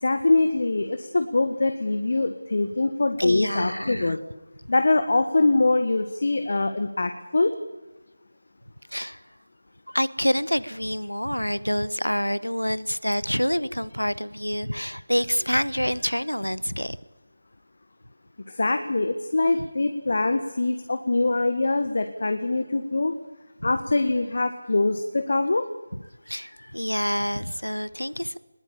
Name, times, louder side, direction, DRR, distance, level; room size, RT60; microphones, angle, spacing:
voice 1, 0.0-4.2 4.7-7.5 18.5-23.1 23.6-25.7, left 2 dB, 50° left, 8 dB, 1.5 m, -23 dB
voice 2, 3.2-4.2 8.9-9.2 9.9-17.0 23.6-23.7 26.3-28.4, equal, 85° left, 18 dB, 1.0 m, -27 dB
21.0 x 20.0 x 8.8 m, 1.1 s
figure-of-eight pair, 160°, 0 cm